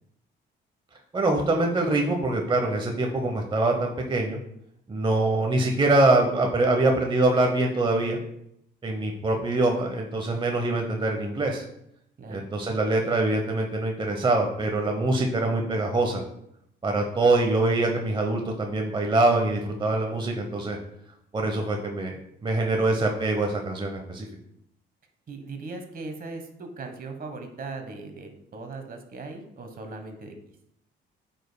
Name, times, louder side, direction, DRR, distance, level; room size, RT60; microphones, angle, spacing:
voice 1, 1.1-4.4 4.9-8.2 8.8-11.6 12.3-16.2 16.8-20.8 21.3-24.3, right 2 dB, 25° right, 2 dB, 0.9 m, -24 dB
voice 2, 25.3-30.4, right 3 dB, 45° right, 5 dB, 1.2 m, -38 dB
8.7 x 5.3 x 2.2 m, 0.74 s
cardioid pair, 90°, 20 cm